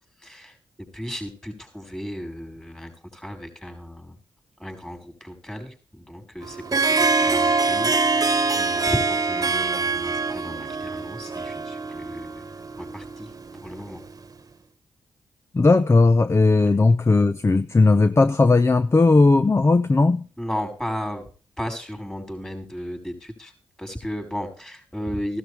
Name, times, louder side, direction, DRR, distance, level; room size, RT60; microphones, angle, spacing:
voice 1, 0.2-4.2 4.6-12.4 12.8-14.0 16.6-16.7 20.4-21.3 21.6-23.5 23.8-25.4, equal, 10° left, 5.7 m, -35 dB
Harp, 6.4-14.2, right 4 dB, 40° right, 1.4 m, -24 dB
voice 2, 15.5-20.3, left 3 dB, 30° left, 0.8 m, -17 dB
16.0 x 12.5 x 3.4 m
cardioid pair, 60°, 9 cm